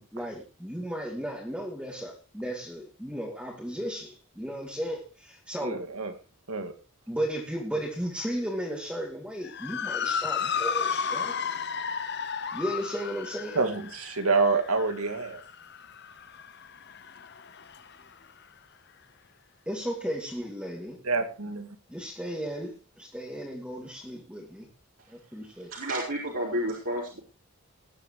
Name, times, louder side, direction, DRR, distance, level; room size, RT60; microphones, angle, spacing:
voice 1, 0.0-5.8 7.1-11.3 12.5-13.6 19.7-21.0 21.9-24.7 25.1-25.7, equal, 5° right, -3 dB, 2.5 m, -35 dB
voice 2, 5.6-6.1 6.5-6.7 13.6-15.4 21.0-21.7, right 4 dB, 85° right, 7 dB, 2.3 m, -27 dB
Motor vehicle (road) / Siren, 9.4-18.0, left 6 dB, 50° left, 0.9 m, -33 dB
voice 3, 25.7-27.2, equal, 65° right, -5 dB, 4.6 m, -30 dB
20.5 x 10.5 x 3.1 m, 0.31 s
head